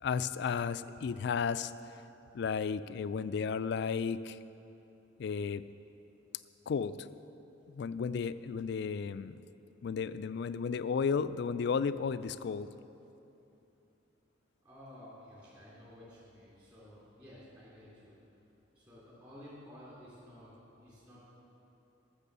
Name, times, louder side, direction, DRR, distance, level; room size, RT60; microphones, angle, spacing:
voice 1, 0.0-1.7 2.3-4.4 5.2-5.6 6.7-6.9 7.7-9.4 9.8-12.7, left 6 dB, 60° left, 14 dB, 0.3 m, -33 dB
voice 2, 14.6-18.2 18.7-21.2, left 1 dB, 20° right, -9 dB, 3.3 m, -53 dB
13.5 x 6.7 x 6.9 m, 2.9 s
head